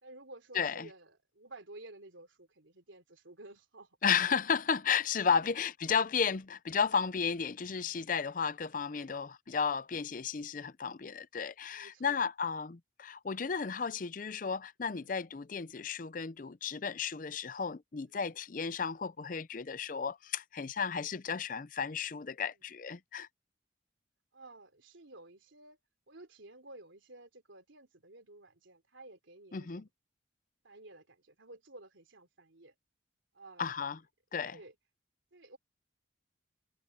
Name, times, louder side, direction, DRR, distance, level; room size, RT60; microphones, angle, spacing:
voice 1, 0.0-4.0 5.4-5.6 8.9-9.2 11.7-12.2 14.8-15.1 18.1-18.3 22.5-22.6 24.3-25.8 26.1-29.9 30.6-32.7 33.3-33.7 34.5-34.7 35.3-35.6, right 2 dB, 85° right, 3.4 m, -53 dB
voice 2, 0.5-0.9 4.0-23.3 29.5-29.9 33.6-34.0 34.3-34.6, left 6 dB, 45° left, 0.5 m, -33 dB
head